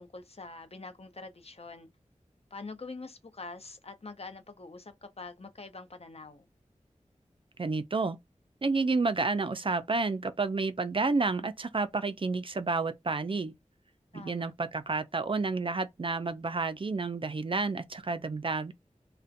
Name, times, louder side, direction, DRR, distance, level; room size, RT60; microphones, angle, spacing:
voice 1, 0.0-1.9 2.5-6.5 14.1-14.5, left 3 dB, 50° left, 0.6 m, -45 dB
voice 2, 7.6-8.2 8.6-13.5 14.1-18.7, right 3 dB, 45° right, 0.3 m, -30 dB
2.4 x 2.1 x 2.5 m
wide cardioid pair, 45°, 13 cm